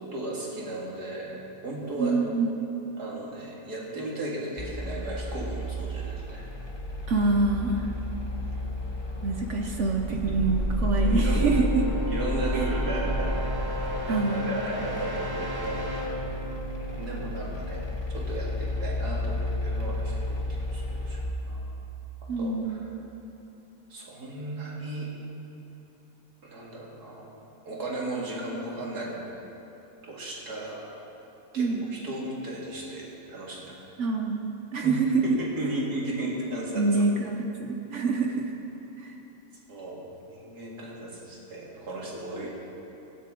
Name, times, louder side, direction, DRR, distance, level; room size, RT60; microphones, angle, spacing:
voice 1, 0.0-2.2 3.0-6.4 10.1-10.6 11.0-11.6 12.1-15.8 16.9-17.8 18.1-21.2 21.4-21.7 22.2-22.8 23.9-25.1 26.4-27.3 27.7-29.2 30.0-30.8 31.5-33.9 34.8-35.0 35.2-37.0 39.7-42.5, right 2 dB, 85° right, -4 dB, 2.7 m, -35 dB
voice 2, 2.0-2.5 7.1-7.9 9.2-11.8 14.1-14.6 22.3-22.9 31.6-31.8 34.0-35.2 36.8-38.5 39.0-39.1 42.4-42.5, right 3 dB, 55° right, 3 dB, 1.0 m, -26 dB
sound 1, 4.6-21.3, left 1 dB, 20° left, 1.1 m, -31 dB
sound 2, 10.2-18.0, left 1 dB, 15° right, 1.4 m, -36 dB
17.0 x 12.5 x 3.7 m, 3.0 s
omnidirectional pair, 1.6 m